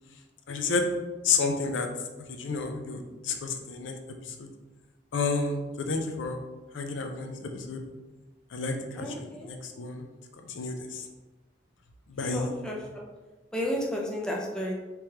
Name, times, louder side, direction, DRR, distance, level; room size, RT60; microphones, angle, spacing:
voice 1, 0.5-0.9 1.2-1.9 2.3-3.9 4.2-4.5 5.1-6.4 6.7-7.8 8.5-10.1 10.5-11.1 12.1-12.6, left 4 dB, 85° left, 5 dB, 0.5 m, -31 dB
voice 2, 9.0-9.5 12.3-13.0 13.5-14.7, equal, 5° left, -2 dB, 0.5 m, -32 dB
3.6 x 3.1 x 2.9 m, 1.2 s
head